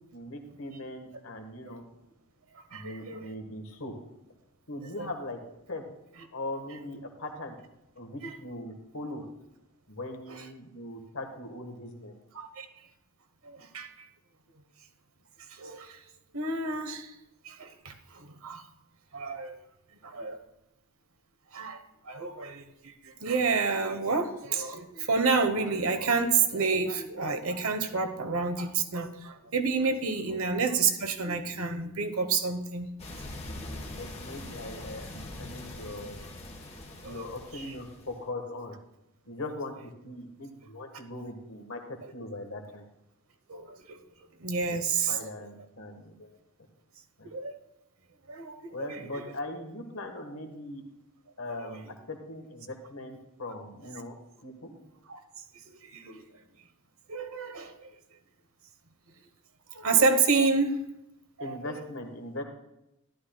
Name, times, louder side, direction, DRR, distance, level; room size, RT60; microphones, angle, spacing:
voice 1, 0.1-1.8 2.7-3.9 4.7-5.4 5.7-5.8 6.3-7.6 8.0-9.2 9.9-12.1 30.3-30.4 34.0-36.3 37.0-38.8 39.2-42.8 44.7-44.8 45.1-46.4 47.2-47.3 48.7-50.8 51.4-54.1 54.4-54.7 61.4-62.4, left 1 dB, 75° left, 4 dB, 1.5 m, -40 dB
voice 2, 2.7-3.3 5.0-5.1 8.2-8.4 10.3-10.4 12.3-12.7 13.4-14.1 15.5-16.0 16.3-17.1 17.4-18.7 19.1-19.6 20.0-20.5 21.5-32.9 37.0-37.2 37.5-37.7 43.5-44.0 44.4-45.2 47.2-47.6 48.3-49.2 55.1-55.2 55.7-56.2 57.1-57.9 59.7-60.8 61.4-61.6, right 4 dB, 80° right, 6 dB, 1.1 m, -29 dB
sound 1, 33.0-38.3, left 1 dB, 30° left, 1.2 m, -42 dB
12.5 x 12.0 x 2.3 m, 0.87 s
head